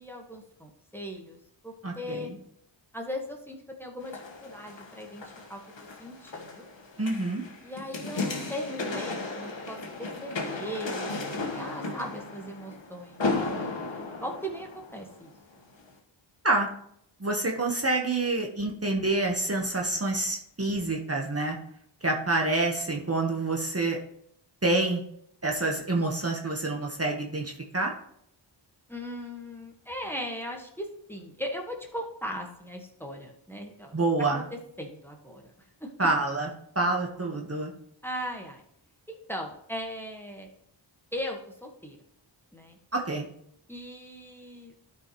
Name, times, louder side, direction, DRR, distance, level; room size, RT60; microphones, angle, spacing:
voice 1, 0.0-1.4 1.6-2.3 2.9-5.6 6.0-6.7 7.6-15.3 28.9-33.9 34.3-35.9 38.0-38.6 39.1-40.5 41.1-42.0 42.5-42.8 43.7-44.7, equal, 5° left, 1 dB, 1.5 m, -38 dB
voice 2, 1.8-2.3 7.0-7.4 16.4-16.7 17.2-21.6 22.0-24.0 24.6-25.0 25.4-27.9 33.9-34.5 36.0-36.5 36.7-37.7 42.9-43.2, right 2 dB, 30° right, 0 dB, 1.3 m, -27 dB
sound 1, 4.0-15.3 15.8-15.9, left 3 dB, 70° left, 1.6 m, -35 dB
12.5 x 5.4 x 3.1 m, 0.73 s
wide cardioid pair, 55°, 47 cm